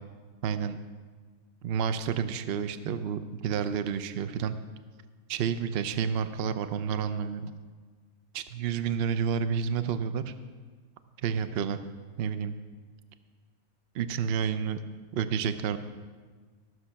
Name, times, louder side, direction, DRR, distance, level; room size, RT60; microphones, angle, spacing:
voice 1, 0.4-0.8 1.6-4.6 5.3-7.5 8.3-10.3 11.2-11.8 12.2-12.5 13.9-14.8 15.1-15.8, right 7 dB, 60° right, 10 dB, 0.7 m, -30 dB
14.5 x 6.2 x 5.7 m, 1.5 s
omnidirectional pair, 1.4 m